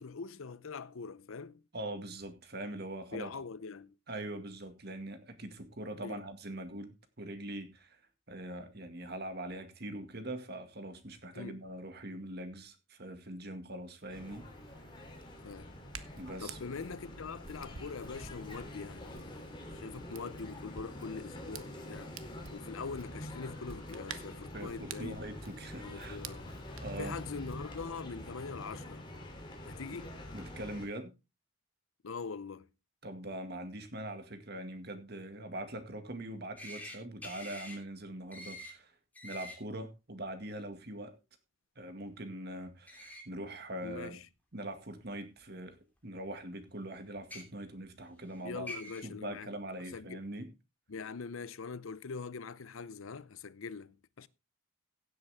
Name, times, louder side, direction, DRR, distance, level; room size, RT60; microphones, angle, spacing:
voice 1, 0.0-1.6 3.1-3.9 6.0-6.2 11.3-11.6 15.4-15.7 16.4-22.1 22.5-25.2 25.8-26.5 27.0-29.1 29.6-30.2 32.0-32.7 43.8-44.3 48.4-49.5 49.9-50.2 50.9-54.3, left 5 dB, 85° left, 0.7 m, -43 dB
voice 2, 1.7-3.3 4.1-8.0 8.3-14.5 16.2-16.6 24.5-26.2 26.8-27.2 29.9-30.0 30.3-31.1 33.0-38.9 39.2-41.2 41.8-44.2 44.5-45.8 46.0-48.7 49.0-50.5, right 1 dB, 50° right, 2.0 m, -42 dB
Hands, 14.0-28.0, right 7 dB, 85° right, 1.0 m, -52 dB
sound 1, 14.1-30.9, left 1 dB, 25° left, 3.1 m, -46 dB
sound 2, 36.6-37.0 37.2-37.8 38.3-38.7 39.1-39.6 42.9-43.2 44.0-44.1 45.4-45.5 47.2-47.4 48.3-48.4 48.7-49.0, left 1 dB, 10° left, 2.9 m, -45 dB
16.0 x 8.1 x 3.6 m
head